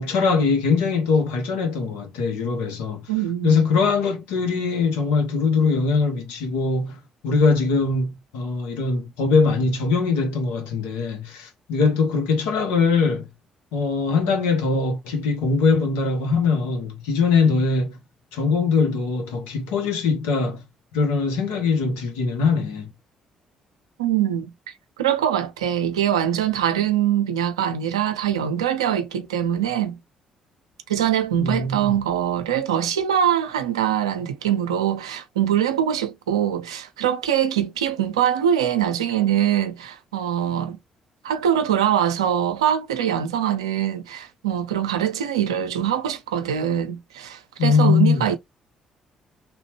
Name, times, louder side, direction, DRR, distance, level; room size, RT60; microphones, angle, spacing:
voice 1, 0.0-3.1 3.4-13.3 13.7-18.0 18.3-20.6 20.9-22.9 31.4-32.0 47.6-48.2, left 4 dB, 75° left, 0.8 m, -22 dB
voice 2, 3.1-3.6 24.0-24.5 25.0-30.0 30.9-40.8 41.2-48.4, right 10 dB, 85° right, 0.4 m, -23 dB
2.9 x 2.1 x 2.9 m
figure-of-eight pair, 45°, 3 cm